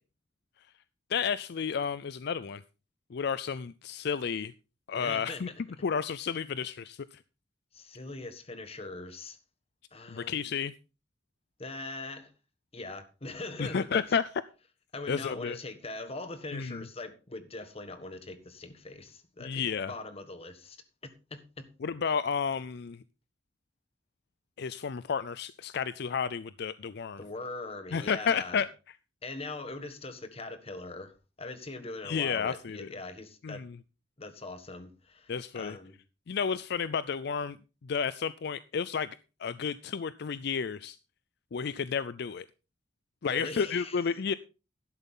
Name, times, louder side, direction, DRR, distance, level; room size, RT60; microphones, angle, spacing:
voice 1, 1.1-2.6 3.1-4.5 4.9-5.5 5.8-7.2 10.1-10.7 13.6-14.3 15.1-15.6 16.5-16.8 19.4-19.9 21.8-23.0 24.6-27.2 27.9-28.7 32.0-32.9 33.4-33.8 35.3-35.8 36.3-37.6 37.8-41.0 41.5-42.5 43.2-44.3, left 6 dB, 65° left, 0.5 m, -31 dB
voice 2, 5.0-5.6 7.7-9.4 9.9-10.4 11.6-12.3 12.7-14.0 14.9-20.8 21.0-21.7 27.2-28.6 29.2-33.6 34.2-36.0 43.3-44.0, left 2 dB, 35° left, 1.5 m, -41 dB
12.5 x 11.0 x 3.7 m
head